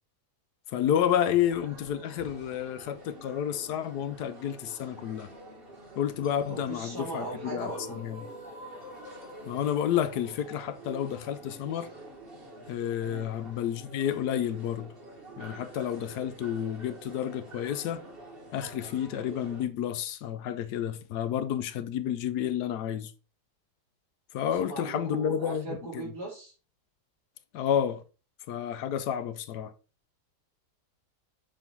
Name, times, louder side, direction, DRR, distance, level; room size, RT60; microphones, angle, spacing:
voice 1, 0.7-5.3 6.0-8.2 9.5-11.9 12.7-14.9 15.4-18.0 18.5-23.1 24.3-26.0 27.5-28.0 28.5-29.7, left 9 dB, 75° left, 1.2 m, -30 dB
sound 1, 0.9-19.6, right 1 dB, 35° right, 1.7 m, -48 dB
sound 2, 6.4-12.4, left 1 dB, 25° left, 0.9 m, -48 dB
voice 2, 6.5-8.0 13.0-13.3 24.6-26.5, right 2 dB, 70° right, 3.3 m, -38 dB
7.1 x 3.4 x 5.6 m
omnidirectional pair, 1.8 m